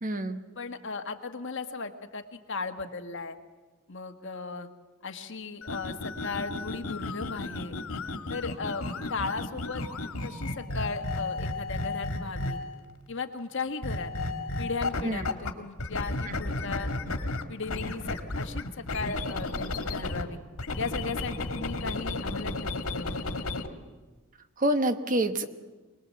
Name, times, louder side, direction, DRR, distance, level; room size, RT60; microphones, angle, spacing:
voice 1, 0.0-0.4 15.0-15.3 24.6-25.5, right 1 dB, 40° right, 9 dB, 1.2 m, -27 dB
voice 2, 0.5-3.4 3.9-4.7 5.0-7.7 8.3-9.9 10.2-12.6 13.1-14.1 14.6-16.9 17.5-20.4 20.8-23.2, left 4 dB, 60° left, 7 dB, 1.5 m, -36 dB
sound 1, 5.6-12.8 13.8-15.5 15.8-20.2 20.6-23.7, left 2 dB, 90° left, 1.8 m, -33 dB
25.5 x 20.0 x 7.6 m, 1.3 s
head